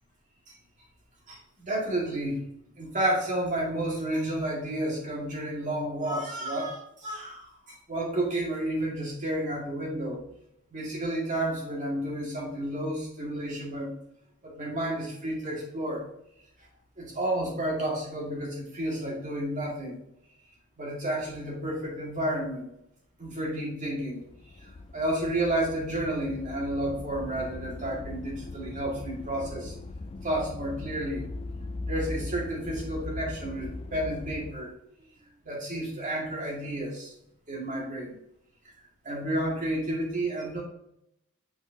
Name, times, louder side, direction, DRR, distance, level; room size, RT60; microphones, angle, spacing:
voice 1, 1.3-2.4 2.8-10.2 10.7-13.9 14.4-16.0 17.0-20.0 20.8-22.7 23.2-29.7 30.2-31.2 31.8-34.7 35.4-37.1 37.5-38.1 39.0-40.6, right 1 dB, 35° right, -3 dB, 2.2 m, -31 dB
sound 1, 24.1-34.5, left 2 dB, 25° left, 0.3 m, -39 dB
8.3 x 4.8 x 2.8 m, 0.78 s
head